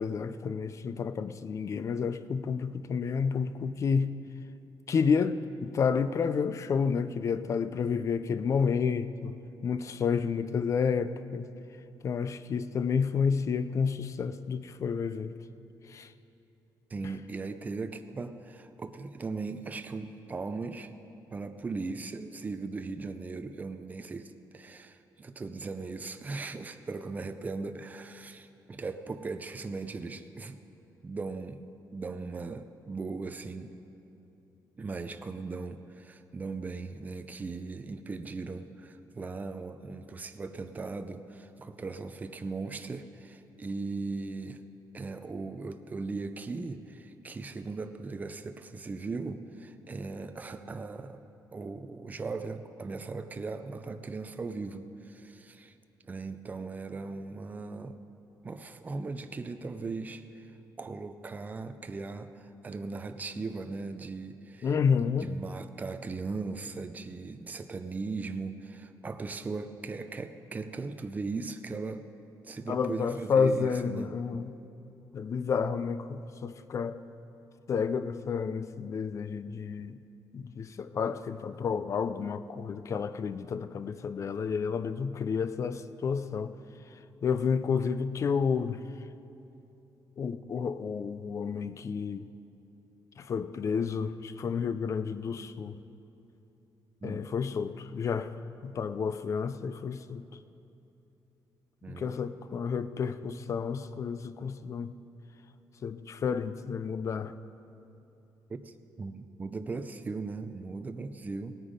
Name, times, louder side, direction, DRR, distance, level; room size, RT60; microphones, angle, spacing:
voice 1, 0.0-4.1 4.9-9.3 9.6-11.5 12.0-15.3 15.9-16.1 64.6-65.3 72.7-74.5 75.1-77.0 77.7-80.0 80.3-86.5 87.2-88.8 90.2-92.3 93.2-95.8 97.0-98.3 98.6-100.2 101.9-104.9 105.8-107.3, left 6 dB, 40° left, 12 dB, 0.4 m, -30 dB
voice 2, 16.9-20.9 21.3-30.6 31.0-31.6 31.9-33.7 34.8-44.6 44.9-51.2 51.5-55.7 56.0-58.0 58.4-72.1 72.4-74.2 97.0-97.2 101.8-102.2 108.5-111.6, right 3 dB, 20° right, 9 dB, 0.5 m, -38 dB
18.0 x 9.0 x 5.1 m, 2.9 s
wide cardioid pair, 160°, 8 cm